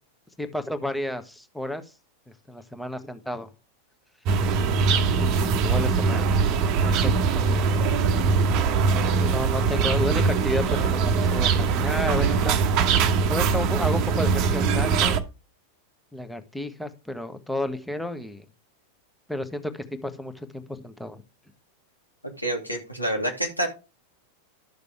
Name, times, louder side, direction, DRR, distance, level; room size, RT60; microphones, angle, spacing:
voice 1, 0.4-1.8 2.5-3.5 5.2-6.3 6.8-8.1 9.2-12.6 13.3-15.2 16.1-18.4 19.3-21.2, left 1 dB, 5° left, 9 dB, 1.2 m, -32 dB
sound 1, 4.3-15.2, right 5 dB, 40° right, 1.1 m, -22 dB
voice 2, 22.4-23.7, right 1 dB, 90° left, 1 dB, 2.5 m, -27 dB
12.0 x 6.7 x 3.5 m, 0.30 s
figure-of-eight pair, 90°, 0 cm